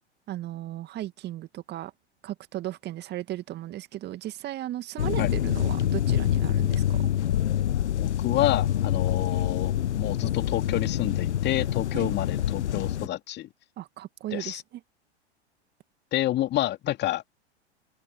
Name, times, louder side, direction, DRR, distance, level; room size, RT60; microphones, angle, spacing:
voice 1, 0.3-1.9 2.2-7.1 11.9-12.1 13.8-14.8, right 14 dB, 30° right, 2.1 m, -36 dB
sound 1, 5.0-13.1, left 11 dB, 75° left, 0.5 m, -26 dB
voice 2, 8.0-13.5 14.3-14.6 16.1-17.2, left 14 dB, 30° left, 2.5 m, -29 dB
figure-of-eight pair, 95°, 34 cm